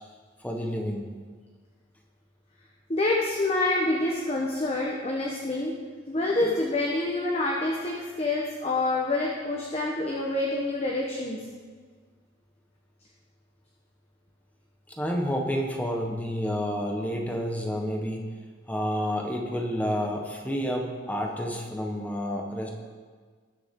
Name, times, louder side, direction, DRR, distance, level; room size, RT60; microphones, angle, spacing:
voice 1, 0.4-1.0 15.0-18.2 18.7-22.7, equal, 10° left, 1 dB, 1.2 m, -29 dB
voice 2, 2.9-5.7 6.1-11.4, left 2 dB, 30° left, -2 dB, 1.1 m, -27 dB
19.5 x 6.9 x 3.7 m, 1.5 s
head